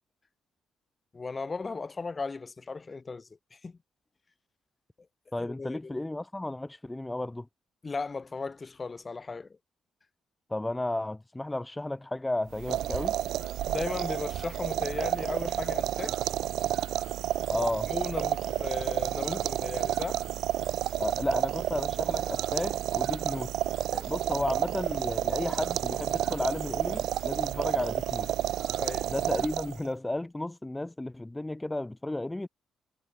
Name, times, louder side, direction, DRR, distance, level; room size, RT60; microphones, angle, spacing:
voice 1, 1.1-3.8 5.4-6.0 7.8-9.5 13.7-16.2 17.9-20.2 28.7-29.1, left 4 dB, 30° left, 3.0 m, -36 dB
voice 2, 5.3-7.5 10.5-13.1 17.5-17.9 21.0-23.5 23.9-28.3 29.1-32.5, left 1 dB, 10° left, 1.6 m, -33 dB
sound 1, 12.5-29.9, right 12 dB, 80° right, 0.6 m, -30 dB
cardioid pair, 90°, 0 cm